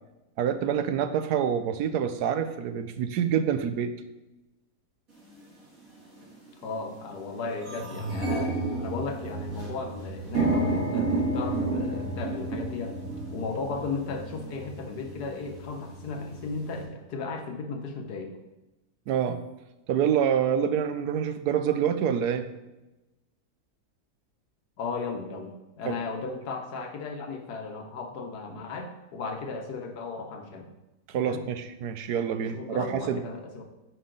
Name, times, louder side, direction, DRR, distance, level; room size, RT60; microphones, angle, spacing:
voice 1, 0.4-3.9 19.1-19.4 19.9-22.5 25.8-25.9 31.1-33.2, right 8 dB, 85° right, 10 dB, 1.2 m, -26 dB
sound 1, 5.2-5.3 6.1-6.3 6.7-6.8 7.1-16.8, right 2 dB, 60° right, 3.2 m, -31 dB
voice 2, 6.6-12.9 13.3-18.3 24.8-30.7 31.2-31.4 32.4-33.6, left 4 dB, 85° left, 4 dB, 1.6 m, -35 dB
9.4 x 5.6 x 3.9 m, 1.0 s
omnidirectional pair, 1.6 m